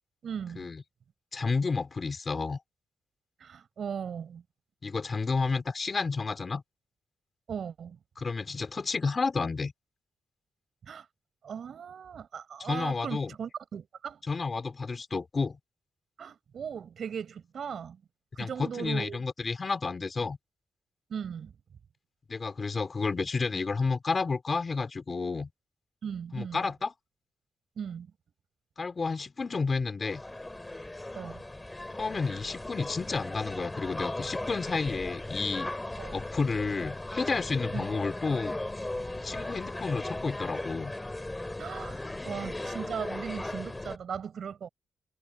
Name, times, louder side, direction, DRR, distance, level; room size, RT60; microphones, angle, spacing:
voice 1, 0.2-0.7 3.4-4.4 7.5-8.0 10.9-11.1 11.4-14.2 16.2-18.0 18.4-19.2 21.1-21.5 26.0-26.7 27.8-28.1 31.2-31.4 36.0-36.2 37.7-37.9 41.6-44.7, right 7 dB, 60° right, 5.6 m, -38 dB
voice 2, 1.3-2.6 4.8-6.6 8.2-9.7 12.6-13.3 14.3-15.6 18.4-20.4 22.3-25.5 26.3-26.9 28.8-30.2 31.9-35.7 36.1-38.6 39.2-40.9, left 4 dB, 35° left, 3.8 m, -31 dB
sound 1, 30.0-44.0, left 2 dB, 15° left, 3.7 m, -37 dB
wide cardioid pair, 125°, 0 cm